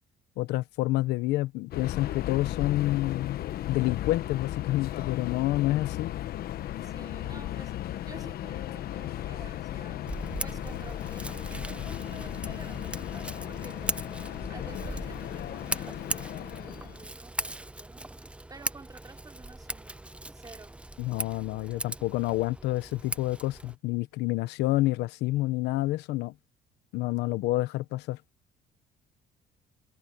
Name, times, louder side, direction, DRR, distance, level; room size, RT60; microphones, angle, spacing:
voice 1, 0.4-6.1 21.0-26.3 26.9-28.2, left 17 dB, 90° left, 0.9 m, -28 dB
Subway metro underground, 1.7-17.0, left 13 dB, 65° left, 1.1 m, -36 dB
voice 2, 6.8-10.1 10.4-14.0 14.5-20.8 21.5-21.6, right 4 dB, 20° right, 4.2 m, -51 dB
Scissors, 10.1-23.8, right 1 dB, 5° right, 0.6 m, -39 dB
cardioid pair, 110°, 17 cm